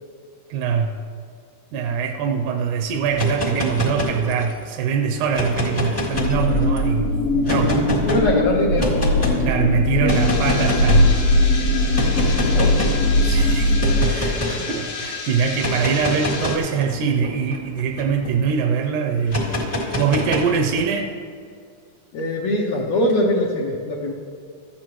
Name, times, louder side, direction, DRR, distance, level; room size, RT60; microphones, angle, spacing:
voice 1, 0.5-1.0 1.7-7.7 9.4-11.1 13.2-19.5 20.0-21.1, right 6 dB, 80° right, 3 dB, 1.9 m, -23 dB
sound 1, 3.0-4.6 5.2-6.8 7.4-8.2 8.8-9.4 10.0-11.1 11.9-13.0 13.8-14.6 15.5-18.3 19.3-20.8, left 1 dB, 15° left, 0.6 m, -26 dB
sound 2, 6.1-14.1, left 1 dB, 90° left, 1.3 m, -19 dB
voice 2, 7.4-9.1 10.0-10.3 12.0-12.9 22.1-24.1, left 1 dB, 70° left, -3 dB, 1.7 m, -23 dB
sound 3, 10.1-16.6, left 4 dB, 55° left, 1.8 m, -32 dB
14.5 x 8.6 x 3.1 m, 2.2 s
omnidirectional pair, 3.8 m